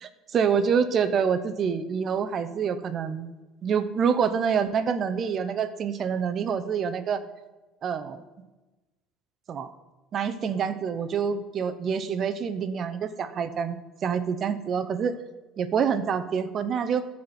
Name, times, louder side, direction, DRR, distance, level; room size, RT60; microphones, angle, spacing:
voice 1, 0.0-3.3 3.6-7.2 7.8-8.2 9.5-9.7 10.1-15.1 15.6-17.1, right 6 dB, 35° right, 11 dB, 0.8 m, -26 dB
13.0 x 4.3 x 7.9 m, 1.1 s
cardioid pair, 140°, 0 cm